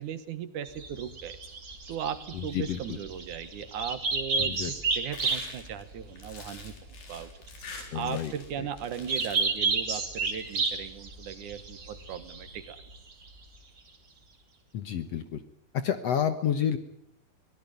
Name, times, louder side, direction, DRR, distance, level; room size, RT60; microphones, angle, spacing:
voice 1, 0.0-1.4 1.9-6.7 7.1-7.3 7.9-12.8, right 9 dB, 70° right, 12 dB, 2.6 m, -37 dB
sound 1, 0.6-13.6, right 4 dB, 35° right, 3.3 m, -32 dB
voice 2, 2.3-3.0 4.4-4.7 7.9-8.3 8.6-8.7 14.7-15.4 15.8-16.8, left 9 dB, 60° left, 10 dB, 1.9 m, -30 dB
sound 2, 5.1-8.5 8.8-9.6 10.3-10.7, left 4 dB, 80° left, 6.0 m, -46 dB
24.0 x 18.0 x 9.3 m, 0.75 s
omnidirectional pair, 4.0 m